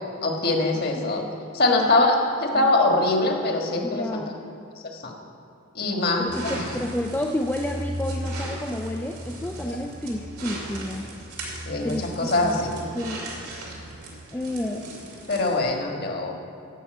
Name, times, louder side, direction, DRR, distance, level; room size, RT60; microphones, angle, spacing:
voice 1, 0.2-1.2 1.5-4.2 4.9-5.1 5.7-6.5 9.6-9.8 11.6-12.7 15.3-16.4, left 2 dB, 45° left, 1 dB, 1.5 m, -23 dB
voice 2, 3.8-4.4 6.2-11.0 11.8-12.7 12.9-13.2 14.3-14.9, left 1 dB, 10° left, 1 dB, 0.4 m, -30 dB
sound 1, 6.3-15.6, right 1 dB, 90° right, 2.7 m, -36 dB
14.0 x 5.7 x 7.8 m, 2.5 s
head